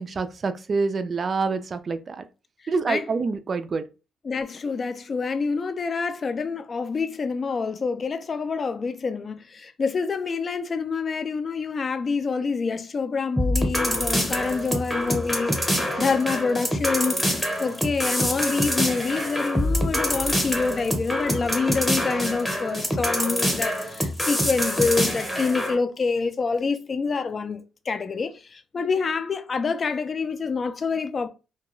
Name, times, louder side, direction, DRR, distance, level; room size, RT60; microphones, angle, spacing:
voice 1, 0.0-2.2 2.7-3.9, right 4 dB, 40° right, 0.3 m, -26 dB
voice 2, 4.2-31.3, left 4 dB, 40° left, 0.3 m, -27 dB
sound 1, 13.4-25.7, equal, 5° left, 0.8 m, -25 dB
2.3 x 2.2 x 3.0 m
cardioid pair, 90°, 0 cm